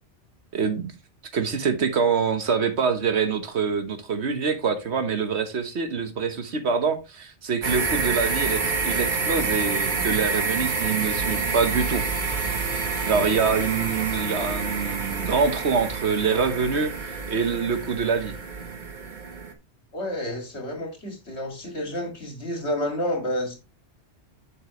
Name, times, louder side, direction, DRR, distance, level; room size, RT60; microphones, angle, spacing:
voice 1, 0.5-0.9 1.3-12.0 13.1-18.4, right 5 dB, 70° right, 1.4 m, -25 dB
sound 1, 7.6-19.5, right 4 dB, 45° right, 1.2 m, -28 dB
voice 2, 19.9-23.5, left 1 dB, 70° left, 2.5 m, -30 dB
7.7 x 6.4 x 3.0 m
omnidirectional pair, 1.2 m